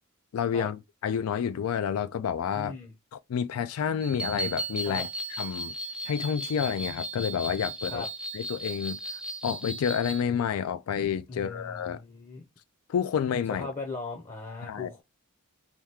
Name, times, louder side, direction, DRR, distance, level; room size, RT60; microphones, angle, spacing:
voice 1, 0.3-2.7 3.3-5.1 5.4-5.7 6.0-8.0 8.3-9.0 9.4-12.0 12.9-13.7 14.6-14.9, left 7 dB, 80° left, 0.3 m, -29 dB
voice 2, 2.5-2.9 4.8-5.0 7.9-8.1 11.3-12.4 13.6-15.0, left 3 dB, 30° left, 0.7 m, -38 dB
sound 1, 4.0-10.2, right 1 dB, 5° right, 0.4 m, -36 dB
2.9 x 2.3 x 3.4 m
head